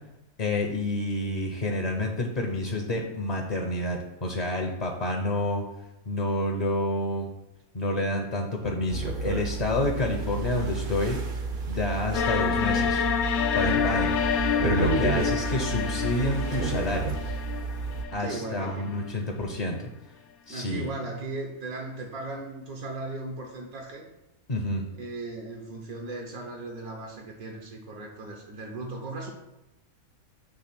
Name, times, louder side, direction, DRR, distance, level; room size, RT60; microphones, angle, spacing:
voice 1, 0.4-5.6 6.1-7.3 7.7-11.2 11.7-13.1 13.5-14.2 14.6-17.2 18.1-19.9 20.5-20.9 24.5-24.8, left 1 dB, 40° left, 1 dB, 0.6 m, -29 dB
sound 1, 8.9-18.1, right 4 dB, 50° right, 0.7 m, -31 dB
sound 2, 12.1-19.1, left 7 dB, 75° left, 1.0 m, -28 dB
voice 2, 18.2-19.0 20.5-24.0 25.0-29.3, right 2 dB, 80° right, 0 dB, 1.4 m, -37 dB
6.5 x 3.3 x 5.9 m, 0.93 s
omnidirectional pair, 1.5 m